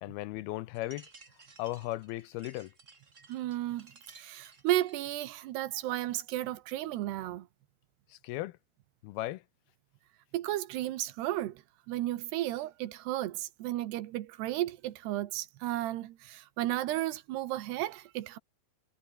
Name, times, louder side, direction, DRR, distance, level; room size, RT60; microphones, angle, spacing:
voice 1, 0.0-1.1 1.6-2.7 8.1-8.6 9.0-9.4, left 17 dB, 80° left, 2.5 m, -36 dB
sound 1, 0.7-5.3, right 3 dB, 20° right, 2.3 m, -57 dB
voice 2, 3.3-7.5 10.3-11.6 11.9-18.4, right 15 dB, 90° right, 3.3 m, -33 dB
omnidirectional pair, 4.7 m